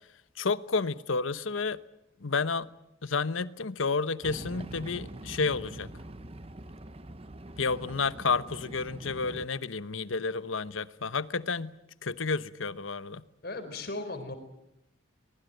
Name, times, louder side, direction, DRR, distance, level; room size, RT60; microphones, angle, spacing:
voice 1, 0.4-1.8 2.2-2.7 3.0-5.9 7.6-11.7 12.0-13.2, left 4 dB, 85° left, 0.9 m, -30 dB
sound 1, 4.2-9.5, right 1 dB, 30° right, 1.0 m, -44 dB
voice 2, 13.4-14.3, left 2 dB, 55° left, 4.2 m, -36 dB
23.0 x 21.0 x 9.2 m
head